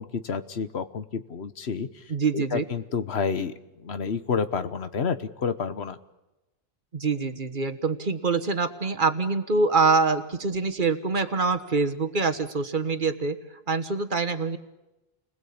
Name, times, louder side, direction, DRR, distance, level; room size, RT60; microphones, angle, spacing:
voice 1, 0.0-1.9 2.3-3.5 3.8-6.0, left 6 dB, 90° left, 12 dB, 1.4 m, -29 dB
voice 2, 2.1-2.6 6.9-13.4 13.7-14.6, right 4 dB, 50° right, 9 dB, 1.6 m, -25 dB
29.5 x 20.5 x 8.7 m, 1.0 s
omnidirectional pair, 1.0 m